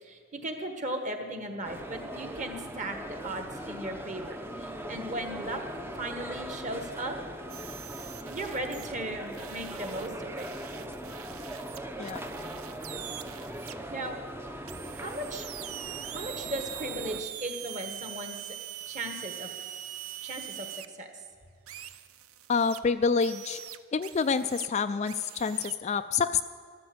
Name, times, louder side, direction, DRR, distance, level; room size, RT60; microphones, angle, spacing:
voice 1, 0.0-5.6 6.0-7.2 8.3-10.5 13.6-14.2 15.0-15.5 16.0-18.6 18.9-19.5 20.2-21.1, right 1 dB, 35° right, 5 dB, 1.5 m, -37 dB
sound 1, 1.6-17.2, right 1 dB, 10° right, 0.6 m, -40 dB
sound 2, 7.5-8.9 9.3-13.7 14.7-20.9 21.7-22.8 23.2-24.7 25.1-25.7, right 12 dB, 80° right, 0.6 m, -43 dB
voice 2, 22.5-23.6 23.9-26.4, left 5 dB, 30° left, 10 dB, 0.3 m, -27 dB
13.0 x 13.0 x 7.9 m, 2.2 s
head